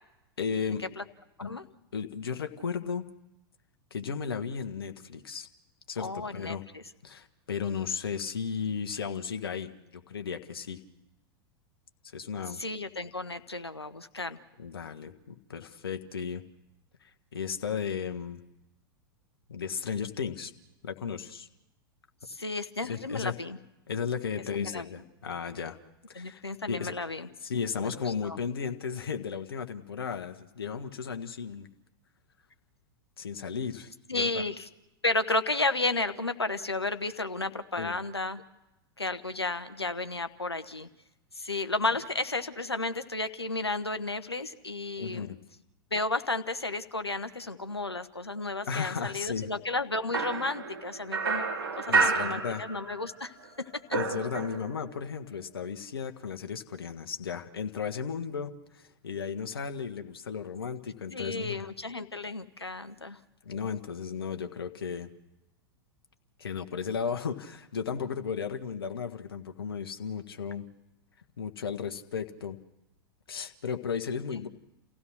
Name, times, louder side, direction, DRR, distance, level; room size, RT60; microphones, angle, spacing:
voice 1, 0.4-0.8 1.4-1.5 1.9-3.0 3.9-5.5 5.9-6.6 7.0-10.8 12.1-12.6 14.6-16.4 17.0-18.4 19.5-20.5 20.8-21.5 22.9-23.3 23.9-25.8 26.1-26.4 26.7-26.9 27.4-31.7 33.2-34.4 37.8-37.9 45.0-45.4 48.7-49.5 51.9-52.6 53.9-61.6 63.4-65.1 66.4-70.6 71.4-72.6 73.3-74.5, left 6 dB, 65° left, 8 dB, 1.6 m, -35 dB
voice 2, 6.0-6.8 12.5-14.4 22.3-23.6 24.6-24.8 26.1-27.3 27.8-28.4 34.1-34.7 35.0-38.4 39.0-40.9 41.3-45.3 45.9-51.4 51.7-53.3 61.1-63.2, left 2 dB, 85° left, 10 dB, 1.1 m, -33 dB
sound 1, 50.1-53.2 53.4-54.9, right 4 dB, 65° right, 2.7 m, -30 dB
29.5 x 16.0 x 6.3 m, 0.98 s
figure-of-eight pair, 95°, 13 cm